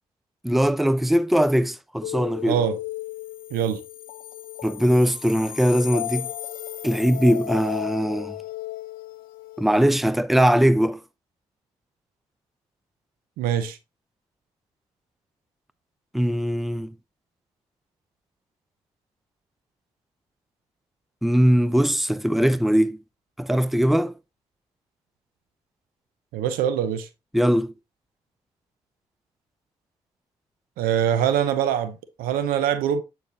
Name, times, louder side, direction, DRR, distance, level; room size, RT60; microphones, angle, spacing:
voice 1, 0.4-2.6 4.6-6.3 6.8-8.4 9.6-11.0 16.1-16.9 21.2-23.0 23.4-24.1 27.3-27.7, equal, ahead, 0.6 m, -20 dB
sound 1, 2.0-10.0, left 13 dB, 75° left, 0.6 m, -35 dB
voice 2, 2.5-2.8 3.5-3.8 13.4-13.8 26.3-27.1 30.8-33.0, right 9 dB, 80° right, 0.7 m, -23 dB
8.4 x 4.3 x 2.9 m
hypercardioid pair, 40°, 15 cm